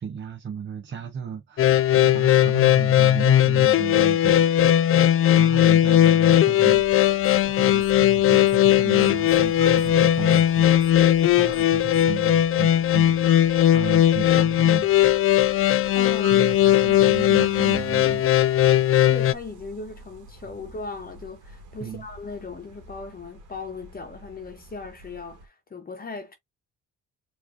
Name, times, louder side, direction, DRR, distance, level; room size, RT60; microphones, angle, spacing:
voice 1, 0.0-5.1 5.4-7.1 7.5-15.0 16.3-18.3 21.8-22.1, right 7 dB, 40° right, 1.0 m, -35 dB
sound 1, 1.6-19.3, left 12 dB, 45° left, 0.4 m, -18 dB
sound 2, 6.6-25.5, right 2 dB, 80° right, 1.4 m, -47 dB
sound 3, 7.2-7.5 7.8-8.7 9.0-12.2, left 7 dB, 5° right, 2.1 m, -48 dB
voice 2, 15.9-16.8 19.1-26.4, left 4 dB, 30° left, 1.2 m, -38 dB
4.5 x 3.0 x 2.7 m
cardioid pair, 90°, 30 cm